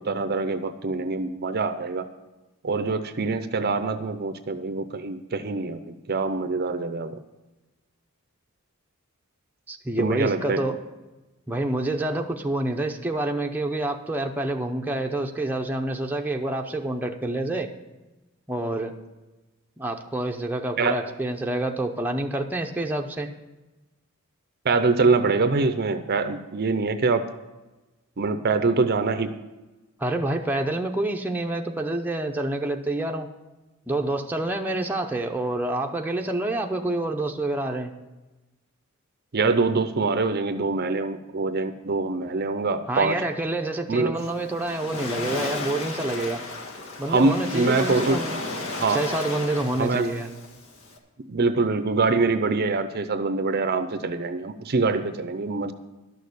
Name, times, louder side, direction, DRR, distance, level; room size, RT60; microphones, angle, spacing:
voice 1, 0.0-2.1 2.6-7.2 10.0-10.6 20.8-21.0 24.6-27.3 28.2-29.3 39.3-43.2 43.9-44.2 47.1-48.2 48.8-49.1 49.7-50.1 51.3-55.7, right 3 dB, 45° right, 10 dB, 0.6 m, -24 dB
voice 2, 9.7-10.8 11.5-17.7 18.5-18.9 19.8-23.3 30.0-33.3 33.9-37.9 42.9-46.4 47.0-48.4 48.9-50.3, right 1 dB, 10° right, 2 dB, 0.7 m, -27 dB
Waves surf, 44.2-51.0, left 2 dB, 65° left, 1.7 m, -34 dB
12.0 x 6.5 x 8.3 m, 1.1 s
head